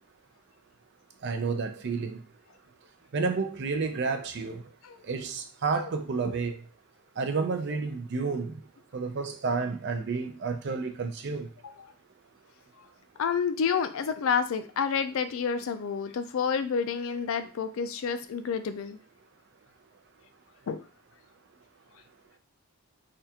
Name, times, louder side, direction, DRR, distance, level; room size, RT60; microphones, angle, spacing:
voice 1, 1.2-2.2 3.1-4.6 5.1-6.6 7.2-8.6 8.9-11.5, right 4 dB, 50° right, 0.4 m, -30 dB
voice 2, 13.2-19.0 20.7-20.8, left 6 dB, 65° left, 0.3 m, -29 dB
3.4 x 2.4 x 2.7 m
head